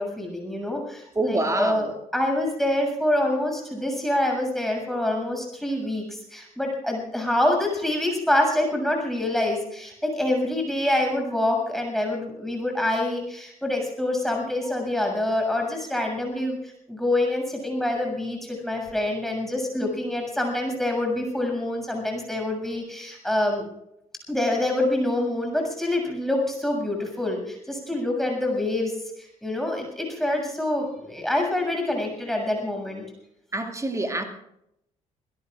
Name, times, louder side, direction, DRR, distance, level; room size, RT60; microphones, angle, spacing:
voice 1, 0.0-16.6 16.9-23.6 24.3-28.9 29.4-33.0, left 1 dB, ahead, 1 dB, 7.2 m, -26 dB
voice 2, 1.2-1.9 33.5-34.2, right 2 dB, 15° right, 4 dB, 2.4 m, -26 dB
27.0 x 18.0 x 2.5 m, 0.79 s
figure-of-eight pair, 45°, 18 cm